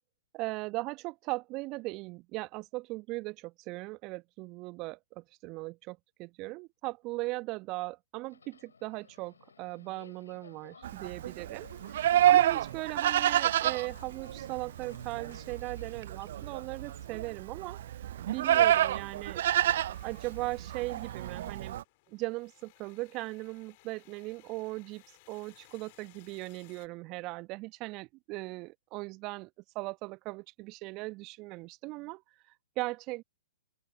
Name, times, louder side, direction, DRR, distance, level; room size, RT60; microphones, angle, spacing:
voice 1, 0.3-17.8 18.3-21.8 22.1-25.0 25.3-29.5 29.7-32.2 32.8-33.2, right 22 dB, 35° right, 1.1 m, -38 dB
Subway metro underground, 8.2-17.1, left 5 dB, 70° left, 6.6 m, -57 dB
Livestock farm animals working animals, 10.8-21.8, right 12 dB, 55° right, 0.4 m, -28 dB
sound 1, 19.9-26.9, left 25 dB, 40° left, 4.3 m, -61 dB
open air
figure-of-eight pair, 115°, 0 cm